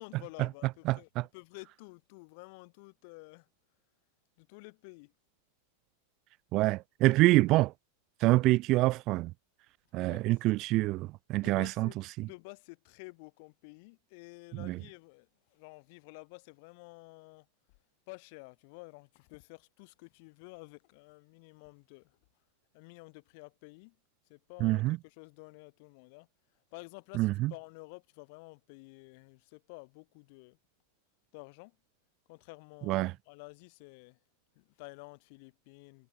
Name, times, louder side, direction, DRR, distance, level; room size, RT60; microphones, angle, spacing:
voice 1, 0.0-3.5 4.4-5.1 10.0-10.3 11.4-17.5 18.1-22.1 22.7-23.9 24.3-26.3 26.7-30.6 31.3-31.8 32.3-34.2 34.6-36.1, left 30 dB, 45° left, 7.3 m, -51 dB
voice 2, 0.9-1.2 6.5-7.7 8.2-9.3 9.9-11.9 12.2-12.3 14.6-14.8 24.6-25.0 27.1-27.5 32.9-33.1, right 19 dB, 40° right, 1.7 m, -26 dB
figure-of-eight pair, 90°, 0 cm